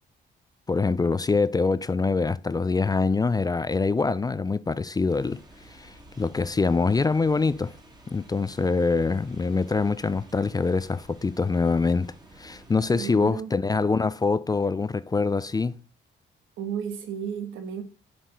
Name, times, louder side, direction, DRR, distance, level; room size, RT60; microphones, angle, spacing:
voice 1, 0.7-5.4 5.7-7.7 8.1-12.1 12.4-15.8, left 4 dB, 20° left, 0.4 m, -24 dB
sound 1, 5.1-13.0, right 1 dB, 20° right, 1.9 m, -51 dB
voice 2, 12.9-13.5 16.6-17.8, right 8 dB, 85° right, 1.6 m, -33 dB
7.5 x 4.8 x 5.3 m
cardioid pair, 90°, 20 cm